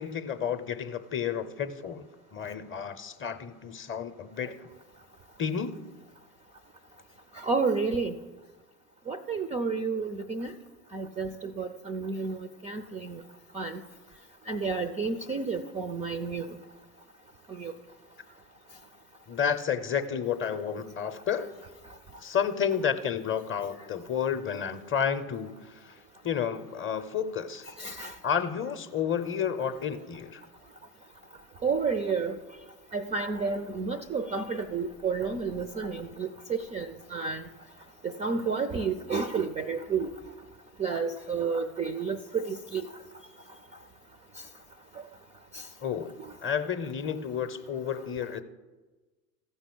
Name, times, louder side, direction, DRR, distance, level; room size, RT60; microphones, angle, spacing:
voice 1, 0.0-2.1 2.3-4.6 5.4-5.8 19.3-21.5 22.2-25.7 26.2-27.7 28.2-30.4 45.8-46.1 46.4-48.4, left 7 dB, 25° left, 11 dB, 0.7 m, -31 dB
voice 2, 7.4-8.1 9.1-10.5 10.9-12.4 12.6-13.2 13.5-13.8 14.5-16.4 17.6-17.7 27.8-28.1 31.6-32.3 32.9-36.9 37.1-37.4 38.2-40.1 40.8-42.9, right 4 dB, 15° right, 9 dB, 0.3 m, -30 dB
14.0 x 5.5 x 6.1 m, 1.3 s
hypercardioid pair, 80°, 48 cm